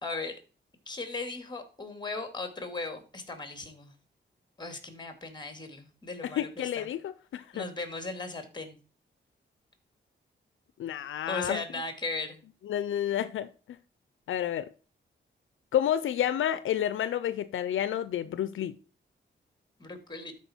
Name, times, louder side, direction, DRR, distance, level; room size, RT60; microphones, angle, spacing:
voice 1, 0.0-0.4 0.9-3.9 4.6-6.9 7.5-8.8 11.3-12.4 19.8-20.3, left 3 dB, 20° left, 2.3 m, -37 dB
voice 2, 6.4-7.7 10.8-11.6 12.7-13.5 14.3-14.7 15.7-18.8, left 10 dB, 85° left, 0.5 m, -30 dB
12.5 x 4.7 x 4.3 m
cardioid pair, 80°, 20 cm